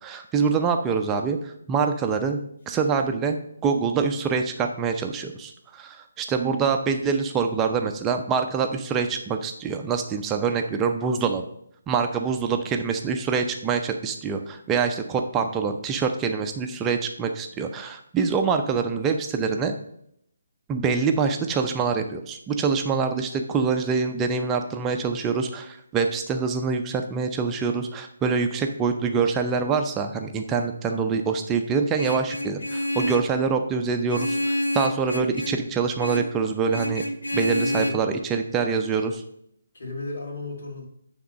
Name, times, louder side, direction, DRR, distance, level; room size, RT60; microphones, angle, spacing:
voice 1, 0.0-2.4 2.7-11.4 11.9-19.7 20.7-37.0 37.3-39.2, right 5 dB, 15° right, 4 dB, 0.6 m, -25 dB
Vehicle horn car horn honking, 32.0-33.3 34.1-35.7 36.0-36.4 36.7-37.9, left 1 dB, 75° left, 0.7 m, -28 dB
voice 2, 37.5-38.0 39.7-40.9, left 2 dB, 60° left, -1 dB, 2.7 m, -34 dB
9.3 x 3.6 x 5.2 m, 0.72 s
figure-of-eight pair, 145°, 0 cm